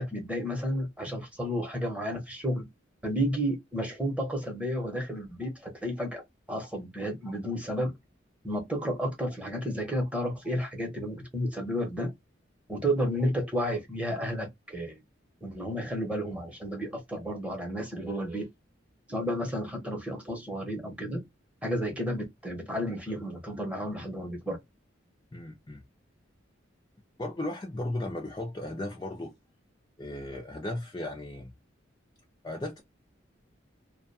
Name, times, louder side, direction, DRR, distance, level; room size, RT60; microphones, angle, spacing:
voice 1, 0.0-2.7 3.0-6.2 6.5-7.9 8.4-12.1 12.7-15.0 15.4-18.5 19.1-21.2 21.6-24.6, equal, 5° right, 0.9 m, -32 dB
voice 2, 25.3-25.8 27.2-29.3 30.0-31.5 32.4-32.8, left 1 dB, 20° left, 0.5 m, -35 dB
2.4 x 2.2 x 2.6 m
head